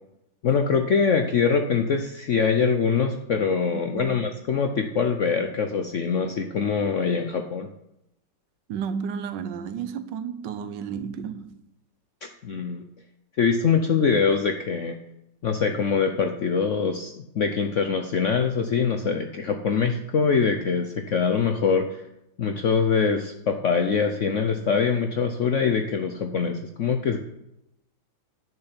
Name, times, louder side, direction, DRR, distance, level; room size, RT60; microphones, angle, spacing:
voice 1, 0.4-7.7 12.4-12.8 13.4-15.0 15.4-22.0 22.4-27.2, left 5 dB, 75° left, 0.7 m, -23 dB
voice 2, 8.7-11.6, right 7 dB, 70° right, 1.3 m, -32 dB
10.5 x 6.8 x 5.7 m
omnidirectional pair, 2.1 m